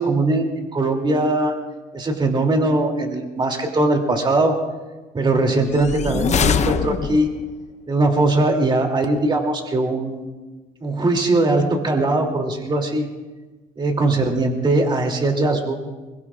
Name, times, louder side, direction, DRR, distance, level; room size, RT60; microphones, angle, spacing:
voice 1, 0.0-1.5 1.9-4.5 5.1-7.3 7.9-10.3 10.8-13.1 13.8-15.8, right 2 dB, 25° right, 2 dB, 2.9 m, -20 dB
sound 1, 5.7-7.5, left 7 dB, 40° left, 0.8 m, -22 dB
23.5 x 23.0 x 2.5 m, 1.2 s
cardioid pair, 110°, 17 cm